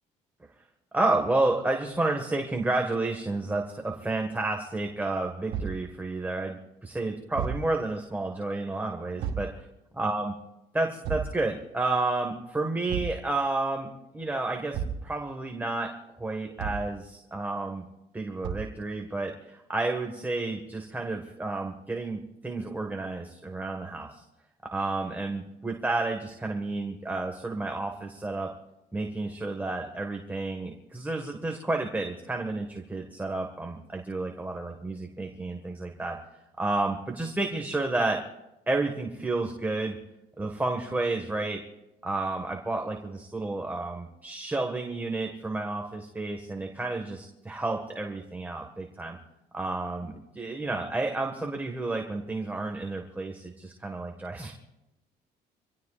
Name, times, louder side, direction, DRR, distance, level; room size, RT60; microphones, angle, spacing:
voice 1, 0.9-9.5 10.0-10.3 10.7-13.9 14.1-15.9 16.2-17.8 18.1-24.2 24.7-28.5 28.9-36.2 36.6-38.2 38.7-40.0 40.4-41.6 42.0-49.2 49.5-54.5, right 2 dB, 10° right, 2 dB, 1.7 m, -31 dB
Thump thud, 5.5-5.8 7.3-7.7 9.2-9.5 11.0-11.4 12.9-13.2 14.7-15.1 16.6-16.9 18.4-18.8, right 7 dB, 85° right, 2.2 m, -32 dB
26.5 x 17.5 x 2.5 m, 0.91 s
cardioid pair, 110°, 17 cm